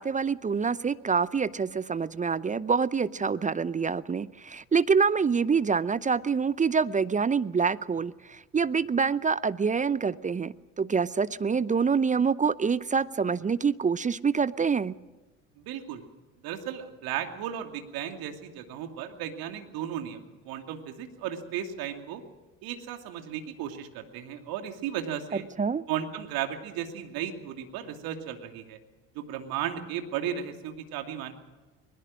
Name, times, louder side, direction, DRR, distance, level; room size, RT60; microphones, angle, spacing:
voice 1, 0.0-14.9 25.6-25.8, right 5 dB, 20° right, 18 dB, 0.6 m, -26 dB
voice 2, 15.6-16.0 16.4-22.2 22.6-25.5 25.9-28.8 29.1-31.3, right 10 dB, 60° right, 5 dB, 2.7 m, -35 dB
21.0 x 21.0 x 6.2 m, 1.2 s
hypercardioid pair, 60°, 40 cm